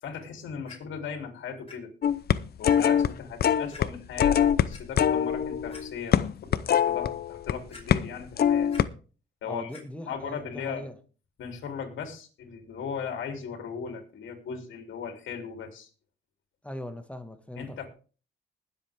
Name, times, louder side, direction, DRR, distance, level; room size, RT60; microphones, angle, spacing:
voice 1, 0.0-1.9 2.6-8.7 9.4-9.7 10.0-10.9 11.4-15.9 17.6-17.9, left 6 dB, 70° left, 4 dB, 3.4 m, -37 dB
Clock, 0.7-0.8 1.7-1.8 2.2-2.3 2.7-2.8 3.7-3.8 4.5-4.8 5.3-5.4 5.7-5.8 6.3-6.8 7.7-8.2 8.5-8.8 9.7-9.8 10.5-10.6, left 4 dB, 30° left, 5.2 m, -47 dB
sound 1, 2.0-3.1 3.4-3.9 4.2-7.5 7.9-8.1 8.4-8.8, left 9 dB, 50° left, 0.7 m, -23 dB
voice 2, 9.4-11.0 16.6-17.8, equal, 5° left, 8 dB, 1.7 m, -40 dB
20.5 x 7.9 x 3.6 m, 0.38 s
cardioid pair, 90°, 20 cm